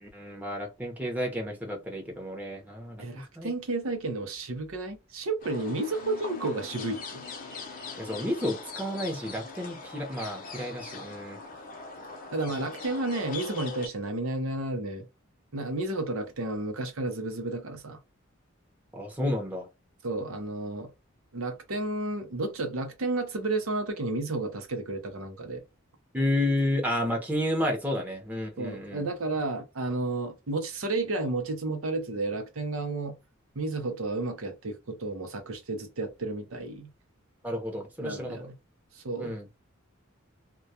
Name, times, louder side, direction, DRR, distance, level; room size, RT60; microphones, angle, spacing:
voice 1, 0.0-3.5 8.0-11.4 12.5-12.6 18.9-19.7 26.1-29.1 37.4-38.4 39.2-39.5, left 1 dB, 10° right, 0.7 m, -31 dB
voice 2, 3.0-7.2 12.3-15.1 15.5-18.0 20.0-20.9 21.3-25.6 28.6-33.2 33.6-36.9 38.0-38.5 38.9-39.4, right 2 dB, 85° right, 0.6 m, -32 dB
sound 1, 5.4-13.9, left 4 dB, 40° left, 0.6 m, -41 dB
2.2 x 2.2 x 2.7 m
head